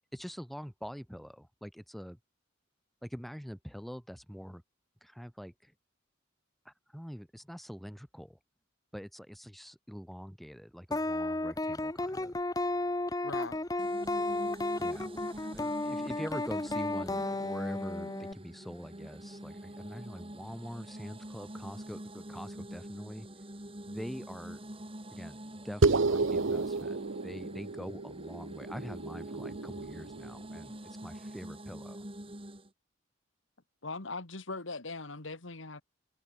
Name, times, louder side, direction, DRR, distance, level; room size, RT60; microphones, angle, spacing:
voice 1, 0.1-2.2 3.0-4.6 5.0-5.7 6.6-8.4 8.9-12.4 14.8-23.3 23.9-24.6 25.1-32.1, equal, ahead, 4.9 m, -44 dB
sound 1, 10.9-18.3, left 2 dB, 20° left, 0.8 m, -33 dB
voice 2, 13.2-13.6 33.8-35.8, left 3 dB, 70° left, 2.2 m, -40 dB
sound 2, 13.8-32.7, right 1 dB, 25° right, 3.9 m, -46 dB
sound 3, 25.8-30.6, right 3 dB, 75° right, 0.9 m, -31 dB
head